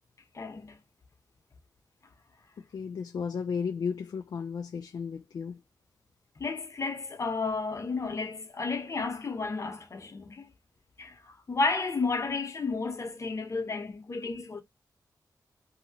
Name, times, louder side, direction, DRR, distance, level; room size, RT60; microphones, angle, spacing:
voice 1, 0.3-0.8 6.4-10.5 11.0-14.6, left 3 dB, 45° left, 1.0 m, -32 dB
voice 2, 2.7-5.6, left 6 dB, 70° left, 0.4 m, -34 dB
2.8 x 2.8 x 2.8 m
wide cardioid pair, 85°, 7 cm